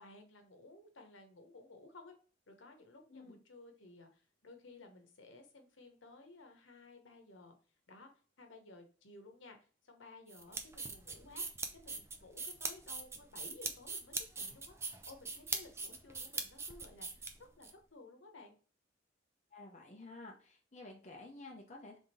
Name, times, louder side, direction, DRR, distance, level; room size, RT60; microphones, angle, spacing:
voice 1, 0.0-2.2 2.5-7.5 7.9-8.1 8.4-9.6 9.8-14.8 15.1-18.6, left 2 dB, 75° left, 4 dB, 1.0 m, -56 dB
sound 1, 10.3-17.7, right 4 dB, 15° right, 0.4 m, -41 dB
voice 2, 19.5-22.0, left 2 dB, 35° left, 0 dB, 0.7 m, -51 dB
3.6 x 3.5 x 4.2 m, 0.39 s
head